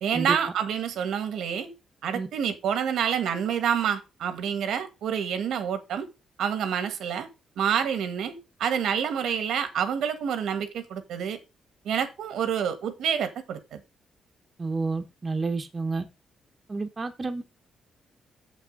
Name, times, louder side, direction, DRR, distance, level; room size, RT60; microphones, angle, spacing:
voice 1, 0.0-1.7 2.0-6.1 6.4-7.3 7.6-11.4 11.8-13.8, right 8 dB, 80° right, 1.5 m, -28 dB
voice 2, 14.6-16.0 16.7-17.4, right 3 dB, 25° right, 1.1 m, -30 dB
7.3 x 6.2 x 5.2 m
cardioid pair, 120°, 0 cm